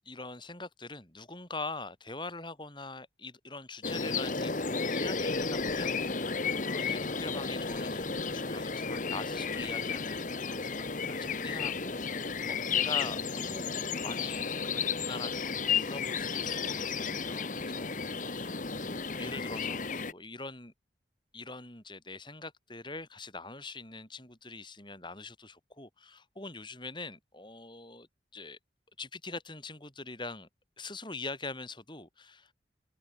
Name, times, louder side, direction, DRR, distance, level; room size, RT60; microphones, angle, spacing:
voice 1, 0.0-17.9 18.2-20.7 21.3-28.1 28.3-28.6 29.0-30.5 30.8-32.5, left 3 dB, 25° left, 6.6 m, -43 dB
sound 1, 3.8-20.1, left 5 dB, 45° left, 1.2 m, -33 dB
open air
head